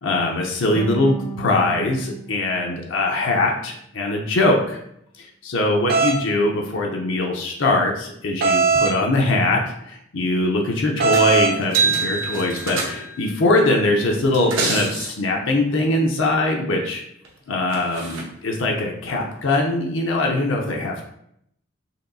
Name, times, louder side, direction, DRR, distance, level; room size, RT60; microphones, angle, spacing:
voice 1, 0.0-4.8 5.2-17.0 17.5-21.1, left 2 dB, 70° left, 0 dB, 0.6 m, -22 dB
sound 1, 0.8-3.9, right 3 dB, 25° left, 0.5 m, -35 dB
sound 2, 5.9-6.2 8.4-9.0 11.0-11.6, right 5 dB, 50° right, 0.6 m, -18 dB
sound 3, 11.1-11.4 11.6-13.3 14.2-15.1 17.2-17.3 17.7-18.2 19.2-19.3, right 4 dB, 85° right, 0.9 m, -25 dB
4.3 x 3.0 x 2.6 m, 0.72 s
head